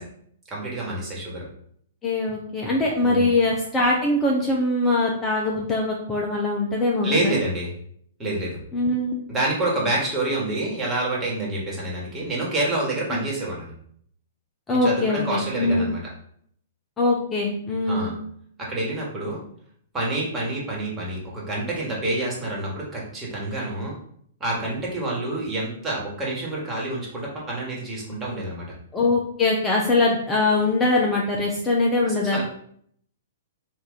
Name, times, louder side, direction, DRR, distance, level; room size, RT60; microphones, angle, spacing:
voice 1, 0.5-1.5 3.0-3.3 7.0-7.7 8.2-8.6 9.3-13.7 14.7-16.0 17.9-18.1 18.6-19.4 19.9-24.0 24.4-28.7 32.1-32.4, right 2 dB, 15° right, -4 dB, 1.7 m, -28 dB
voice 2, 2.0-7.4 8.7-9.2 13.1-13.2 14.7-15.9 17.0-18.2 28.9-32.4, left 2 dB, 15° left, -2 dB, 0.7 m, -22 dB
4.6 x 2.7 x 4.1 m, 0.65 s
figure-of-eight pair, 110°, 0 cm